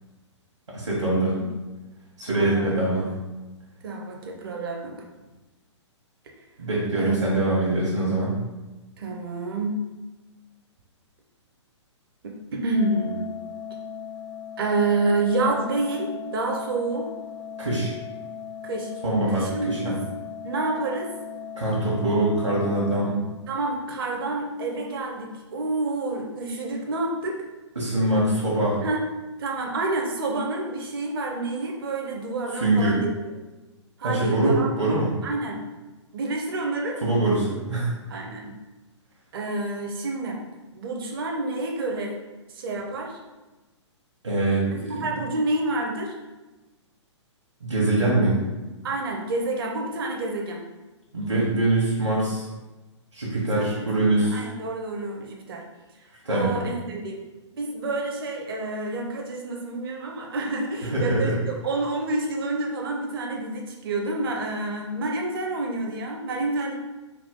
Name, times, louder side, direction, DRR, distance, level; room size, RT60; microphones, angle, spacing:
voice 1, 0.7-1.4 2.2-3.1 6.6-8.4 17.6-17.9 19.0-19.8 21.6-23.2 27.8-28.8 32.6-33.0 34.0-35.1 37.0-37.9 44.2-45.0 47.6-48.4 51.1-52.5 53.1-54.5 56.2-56.5 60.9-61.4, right 2 dB, 70° right, -6 dB, 1.1 m, -23 dB
voice 2, 2.3-2.8 3.8-5.0 7.0-7.2 9.0-9.8 12.2-13.3 14.6-17.1 18.6-18.9 19.3-20.0 20.4-21.1 23.5-27.3 28.8-29.0 29.4-33.1 34.0-34.7 35.2-35.6 36.1-37.0 38.1-38.5 39.3-40.4 40.7-42.2 42.5-43.2 44.7-46.1 48.8-50.6 53.5-55.6 56.3-57.2 57.5-66.8, right 2 dB, 50° right, 1 dB, 0.6 m, -28 dB
Organ, 12.7-23.7, left 6 dB, 85° left, 1.0 m, -38 dB
3.8 x 2.3 x 3.6 m, 1.1 s
figure-of-eight pair, 120°, 16 cm